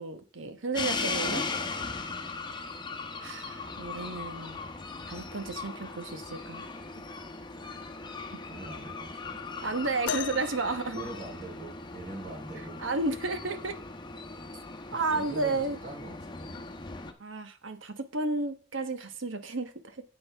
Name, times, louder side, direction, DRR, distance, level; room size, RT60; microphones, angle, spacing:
voice 1, 0.0-1.5 3.2-4.6 5.1-6.7 9.6-11.0 12.8-13.7 14.9-15.8 17.2-20.0, right 3 dB, 85° right, 1.1 m, -32 dB
sound 1, 0.7-17.1, left 4 dB, 25° left, 1.0 m, -38 dB
voice 2, 8.5-9.4 10.9-12.9 14.9-16.6, right 2 dB, 45° right, 4.5 m, -43 dB
sound 2, 10.1-12.0 13.6-13.7 14.5-14.7 15.7-15.8, left 8 dB, 65° left, 0.4 m, -38 dB
10.0 x 7.7 x 3.4 m
head